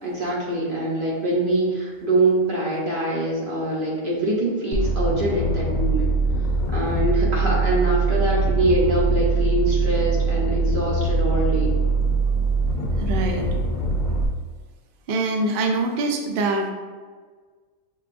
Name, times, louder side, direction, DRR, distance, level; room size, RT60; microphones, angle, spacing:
voice 1, 0.0-6.2 6.7-11.7, right 2 dB, 45° right, -5 dB, 0.9 m, -24 dB
sound 1, 4.7-14.3, right 3 dB, 85° left, 0.4 m, -22 dB
voice 2, 13.0-13.5 15.1-16.7, right 2 dB, 65° right, 3 dB, 0.5 m, -24 dB
6.4 x 2.3 x 2.5 m, 1.5 s
omnidirectional pair, 1.4 m